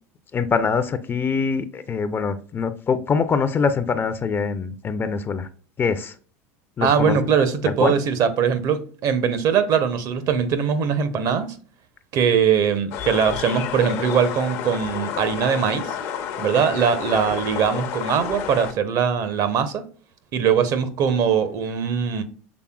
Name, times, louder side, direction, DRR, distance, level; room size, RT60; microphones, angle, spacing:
voice 1, 0.3-5.5 5.8-6.1 6.8-7.1 7.8-7.9, left 5 dB, 25° left, 0.5 m, -23 dB
voice 2, 6.8-11.6 12.1-15.9 16.4-19.9 20.3-22.2, right 7 dB, 50° right, 0.7 m, -21 dB
sound 1, 12.9-18.7, left 8 dB, 65° left, 0.8 m, -30 dB
6.1 x 3.3 x 2.2 m
hypercardioid pair, 95°, 8 cm